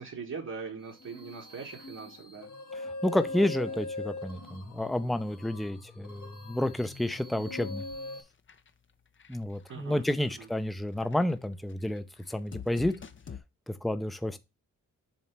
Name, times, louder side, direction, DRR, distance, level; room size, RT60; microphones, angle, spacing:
voice 1, 0.0-2.5 3.3-3.8 9.7-10.5, right 5 dB, 60° right, 1.5 m, -42 dB
sound 1, 0.9-8.2, left 2 dB, 70° left, 1.8 m, -41 dB
voice 2, 3.0-7.9 9.3-12.9 13.7-14.4, left 1 dB, ahead, 0.6 m, -30 dB
sound 2, 7.8-8.2 8.5-8.7 9.2-9.7 10.1-10.5 10.9-13.4, left 7 dB, 40° left, 0.7 m, -46 dB
7.3 x 3.2 x 4.5 m
cardioid pair, 65°, 32 cm